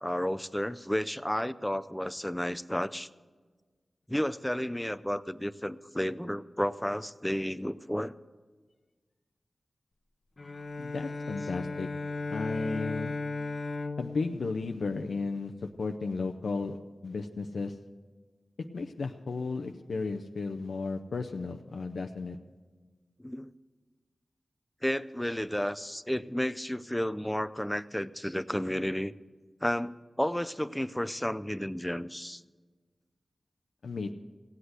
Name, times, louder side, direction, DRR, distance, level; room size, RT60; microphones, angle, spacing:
voice 1, 0.0-3.1 4.1-8.1 23.2-23.5 24.8-29.1 29.6-32.4, equal, 5° left, 15 dB, 0.4 m, -32 dB
Bowed string instrument, 10.4-15.6, left 3 dB, 45° left, 0.9 m, -37 dB
voice 2, 10.8-11.9 12.3-13.2 14.0-16.8 17.0-17.7 18.7-22.4 33.8-34.1, left 4 dB, 85° left, 4 dB, 0.6 m, -34 dB
16.5 x 8.1 x 7.9 m, 1.4 s
wide cardioid pair, 85°, 0 cm